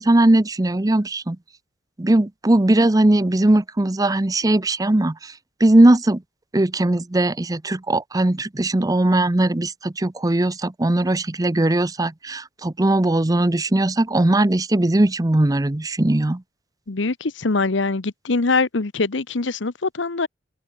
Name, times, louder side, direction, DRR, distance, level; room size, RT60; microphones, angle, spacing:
voice 1, 0.0-1.4 2.0-5.1 5.6-6.2 6.5-16.4, right 1 dB, 20° right, 0.6 m, -19 dB
voice 2, 16.9-20.3, left 3 dB, 75° left, 1.0 m, -23 dB
open air
head